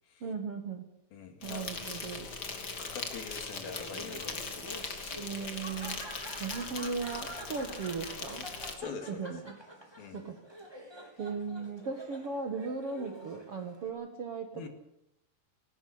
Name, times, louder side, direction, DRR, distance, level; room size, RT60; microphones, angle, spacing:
voice 1, 0.2-0.9 1.4-2.3 5.2-6.0 6.4-8.5 9.1-9.6 10.1-10.4 11.2-14.7, right 5 dB, 55° right, 4 dB, 1.7 m, -37 dB
voice 2, 1.1-1.7 2.8-5.2 6.4-6.6 8.8-9.3 10.0-10.2 14.5-14.7, left 5 dB, 65° left, 6 dB, 3.8 m, -44 dB
Insect, 1.4-8.7, left 4 dB, 35° left, 1.8 m, -40 dB
Laughter, 3.5-13.9, right 1 dB, 5° right, 2.8 m, -48 dB
18.0 x 18.0 x 8.5 m, 0.80 s
omnidirectional pair, 4.7 m